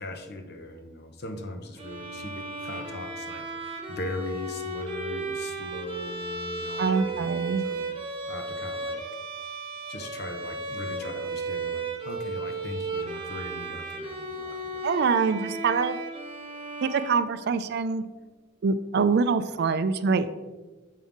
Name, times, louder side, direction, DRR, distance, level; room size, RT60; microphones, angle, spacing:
voice 1, 0.0-8.0 8.3-9.0 9.9-14.9, left 1 dB, 55° left, 5 dB, 0.8 m, -39 dB
Bowed string instrument, 1.8-17.9, right 3 dB, 30° right, 1.1 m, -35 dB
voice 2, 6.8-7.6 14.8-16.0 16.8-18.0 18.6-20.3, right 5 dB, 55° right, 12 dB, 0.4 m, -24 dB
7.5 x 5.4 x 3.5 m, 1.2 s
head